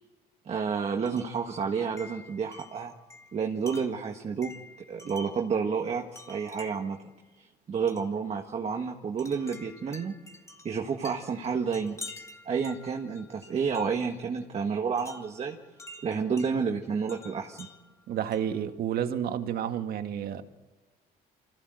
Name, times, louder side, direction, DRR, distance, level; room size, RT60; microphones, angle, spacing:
voice 1, 0.5-2.9 3.3-4.5 4.9-7.0 7.4-10.1 10.6-12.0 12.5-15.6 16.0-17.7, right 6 dB, 40° right, 3 dB, 1.8 m, -30 dB
Wind chime, 1.0-1.4 2.0-5.5 6.1-7.0 7.9-8.1 9.2-14.1 15.0-16.5 17.1-18.6, left 2 dB, 15° left, 2.4 m, -48 dB
voice 2, 18.1-20.4, right 9 dB, 65° right, 7 dB, 1.8 m, -30 dB
25.5 x 16.0 x 7.9 m, 1.2 s
cardioid pair, 110°, 17 cm